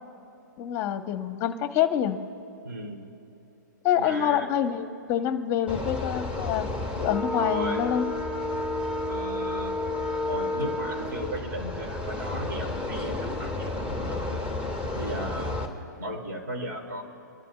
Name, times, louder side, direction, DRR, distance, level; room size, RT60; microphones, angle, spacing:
voice 1, 0.6-2.2 3.8-6.7 7.0-8.1, left 10 dB, 30° left, 9 dB, 1.0 m, -26 dB
voice 2, 2.6-3.0 3.9-4.5 7.4-7.8 9.1-9.7 10.3-14.2 14.9-15.7 16.0-17.0, equal, 65° right, 2 dB, 3.0 m, -36 dB
sound 1, 5.7-15.7, left 2 dB, 10° right, 2.2 m, -31 dB
23.5 x 12.5 x 2.4 m, 2.8 s
hypercardioid pair, 130°, 10 cm